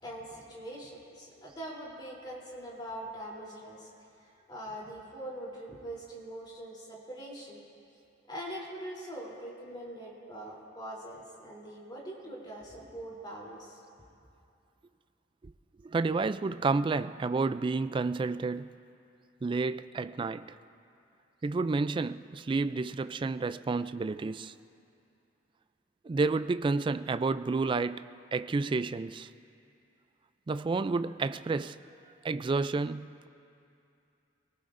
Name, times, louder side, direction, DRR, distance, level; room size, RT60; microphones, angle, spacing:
voice 1, 0.0-3.9 4.2-7.6 8.3-13.8, right 1 dB, 25° left, 3.2 m, -43 dB
voice 2, 15.8-18.7 19.4-20.6 21.4-24.5 26.0-29.3 30.5-31.8 32.2-33.3, right 3 dB, 25° right, 0.3 m, -30 dB
23.0 x 18.5 x 2.6 m
head